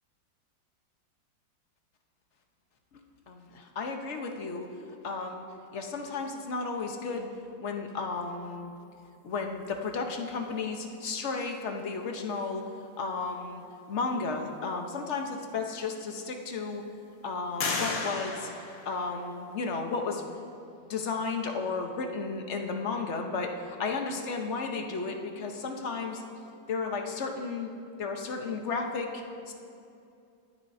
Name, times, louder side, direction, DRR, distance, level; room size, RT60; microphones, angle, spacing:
voice 1, 3.3-4.7 5.0-5.4 5.7-7.3 7.6-8.7 9.2-12.6 13.0-16.8 17.2-18.5 18.8-20.2 20.9-26.2 26.7-27.7 28.0-29.5, left 4 dB, 45° left, 3 dB, 1.0 m, -33 dB
sound 1, 15.3-15.4 16.0-16.7 17.6-19.5, left 4 dB, 75° left, 1.9 m, -35 dB
24.5 x 9.7 x 2.7 m, 2.6 s
omnidirectional pair, 2.1 m